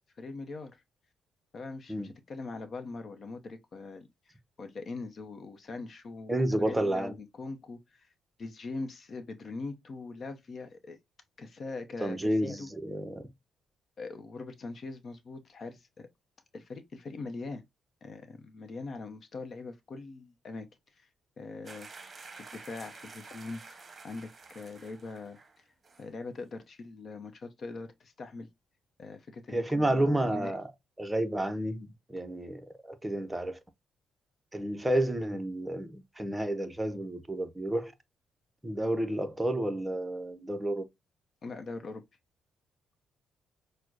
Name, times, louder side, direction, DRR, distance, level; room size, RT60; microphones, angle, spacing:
voice 1, 0.2-0.8 1.5-6.3 6.6-8.1 8.4-11.0 11.4-12.7 14.0-16.1 16.5-17.6 18.0-20.7 21.0-21.1 21.4-21.9 22.3-25.6 26.0-28.5 29.0-30.5 41.4-42.0, left 3 dB, 50° left, 0.7 m, -42 dB
voice 2, 6.3-7.2 12.0-13.3 29.5-30.7 31.0-33.6 34.5-37.9 38.6-40.8, right 1 dB, 10° right, 0.7 m, -30 dB
sound 1, 21.6-25.6 25.8-26.1, right 4 dB, 30° right, 1.0 m, -50 dB
6.0 x 2.1 x 2.4 m
cardioid pair, 90°, 0 cm